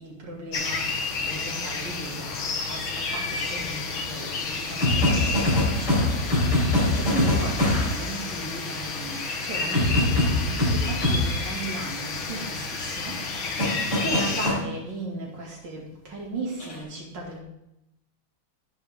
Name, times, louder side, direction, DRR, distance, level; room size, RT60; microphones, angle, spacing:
voice 1, 0.0-17.4, right 2 dB, 60° right, -2 dB, 3.0 m, -36 dB
sound 1, 0.5-14.5, left 4 dB, 80° left, 2.2 m, -31 dB
sound 2, 4.8-8.0 9.7-11.2 13.6-14.6 16.6-16.8, left 1 dB, 55° left, 4.3 m, -22 dB
10.0 x 9.9 x 3.7 m, 0.86 s
omnidirectional pair, 2.3 m